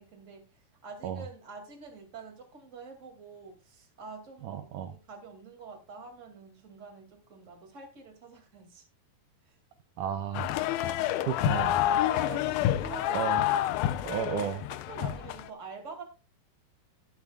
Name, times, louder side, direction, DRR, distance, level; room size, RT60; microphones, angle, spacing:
voice 1, 0.0-8.8 9.5-9.6 10.9-11.3 12.0-13.8 14.4-16.0, right 4 dB, 25° right, 2 dB, 2.0 m, -46 dB
voice 2, 4.4-5.0 10.0-10.5 11.3-11.8 13.1-13.4 14.0-14.6, right 9 dB, 85° right, 8 dB, 1.8 m, -33 dB
sound 1, 10.3-15.5, left 13 dB, 80° left, 2.4 m, -28 dB
17.5 x 7.3 x 2.4 m, 0.31 s
omnidirectional pair, 4.5 m